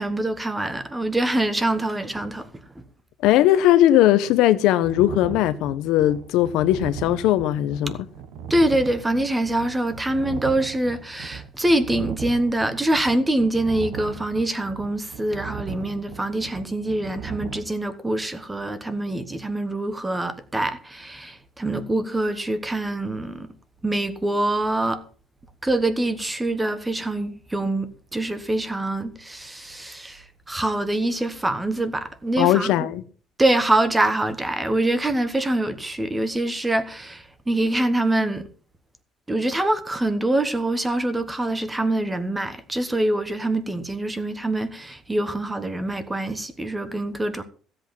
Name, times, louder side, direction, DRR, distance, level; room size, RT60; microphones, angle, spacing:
voice 1, 0.0-2.5 2.7-2.8 8.5-23.5 23.8-25.0 25.6-32.9 33.4-38.5 39.3-47.4, right 1 dB, 10° right, 1.2 m, -24 dB
voice 2, 3.2-8.0 32.4-33.0, left 13 dB, 85° left, 1.0 m, -19 dB
sound 1, 4.8-17.6, right 8 dB, 85° right, 1.6 m, -38 dB
16.0 x 8.0 x 5.9 m
cardioid pair, 180°, 0 cm